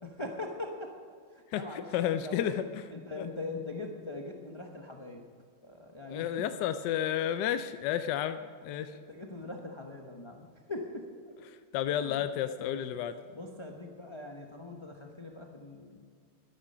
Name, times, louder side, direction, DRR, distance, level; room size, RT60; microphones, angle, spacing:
voice 1, 0.0-0.9 1.3-2.6 2.9-5.2 5.6-6.3 8.9-11.3 11.9-12.3 12.6-13.0 13.3-16.0, left 2 dB, 30° left, 1 dB, 0.5 m, -41 dB
voice 2, 1.5-2.5 3.2-3.3 6.1-9.0 11.7-13.1, left 10 dB, 75° left, 10 dB, 1.0 m, -31 dB
12.5 x 11.0 x 5.6 m, 2.1 s
omnidirectional pair, 2.3 m